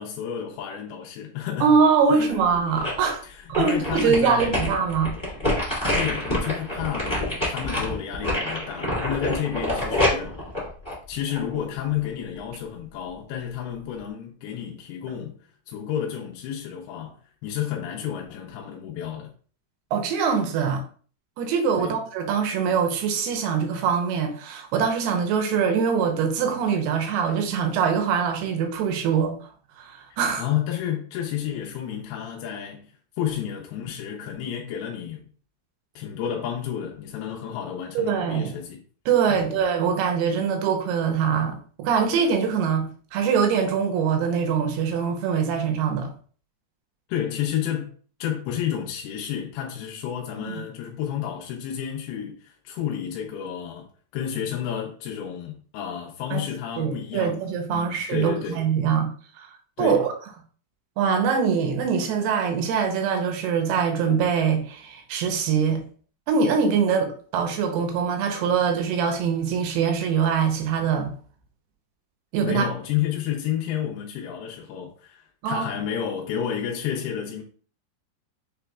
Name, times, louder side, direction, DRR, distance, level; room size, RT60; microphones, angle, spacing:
voice 1, 0.0-1.7 2.1-2.4 3.2-4.6 5.9-10.4 11.1-15.4 15.7-17.2 17.4-19.3 21.8-21.9 30.1-32.9 33.2-35.2 36.0-38.8 39.3-39.6 47.1-47.9 48.2-53.9 54.1-57.4 57.7-58.6 59.8-60.0 72.4-77.4, left 9 dB, 80° left, 2.3 m, -31 dB
voice 2, 1.6-3.2 3.5-5.1 19.9-20.8 21.4-29.4 29.8-30.4 38.0-38.5 39.1-42.9 43.1-46.1 50.5-50.6 56.3-56.4 56.8-59.1 59.4-59.5 59.8-60.1 61.0-65.8 66.3-71.1 72.3-72.7 75.4-75.7, right 6 dB, 80° right, 2.5 m, -23 dB
sound 1, 2.3-3.1 3.5-11.6 12.0-12.1, left 1 dB, 40° left, 0.3 m, -27 dB
6.8 x 3.4 x 2.3 m
omnidirectional pair, 5.0 m